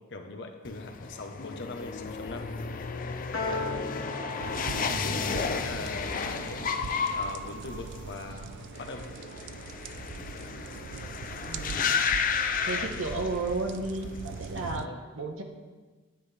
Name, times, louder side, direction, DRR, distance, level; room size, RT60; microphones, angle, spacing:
voice 1, 0.1-2.5 3.4-3.9 5.0-6.7 7.1-9.0 14.6-15.0, left 2 dB, 60° left, 4 dB, 1.0 m, -40 dB
sound 1, 0.6-13.7 14.0-14.6, left 6 dB, 45° left, 0.5 m, -33 dB
Piano, 3.3-9.8, left 2 dB, 85° left, 1.4 m, -41 dB
sound 2, 4.4-14.9, right 6 dB, 60° right, 0.3 m, -42 dB
voice 2, 12.6-14.9 15.1-15.4, right 2 dB, 75° right, 3 dB, 1.2 m, -33 dB
10.5 x 9.3 x 3.4 m, 1.3 s
head